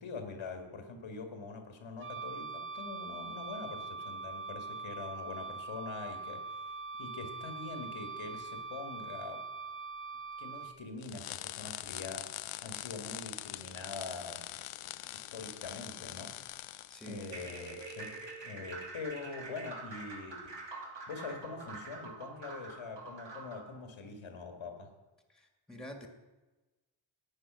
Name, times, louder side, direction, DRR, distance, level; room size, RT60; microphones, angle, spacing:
voice 1, 0.0-6.4 7.0-9.4 10.4-12.3 12.6-14.5 15.0-16.5 17.1-18.2 18.4-20.6 21.1-24.9, left 4 dB, 70° left, 5 dB, 1.9 m, -44 dB
Wind instrument woodwind instrument, 2.0-10.8, right 4 dB, 25° right, 0.6 m, -42 dB
sound 1, 11.0-18.2, left 14 dB, 90° left, 0.6 m, -44 dB
voice 2, 16.9-17.4 25.3-26.1, right 1 dB, ahead, 4 dB, 2.0 m, -47 dB
sound 2, 17.2-23.7, right 3 dB, 60° right, 2.9 m, -46 dB
11.0 x 8.8 x 6.2 m, 1.1 s
cardioid pair, 65°, 49 cm